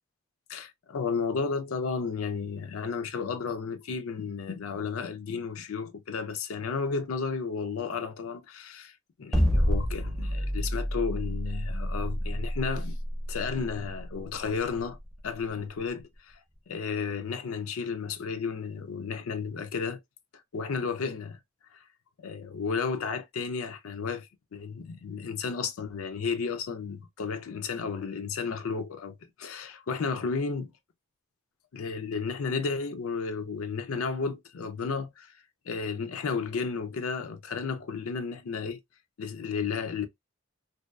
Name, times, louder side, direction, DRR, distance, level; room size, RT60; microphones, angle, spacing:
voice 1, 0.5-13.0 13.3-15.0 15.2-16.4 16.7-20.0 20.5-21.4 21.7-21.8 22.2-30.7 31.7-35.4 35.7-38.8 39.2-40.1, left 5 dB, 90° left, 0.5 m, -33 dB
sound 1, 9.3-15.5, equal, ahead, 0.4 m, -28 dB
2.6 x 2.2 x 2.2 m
head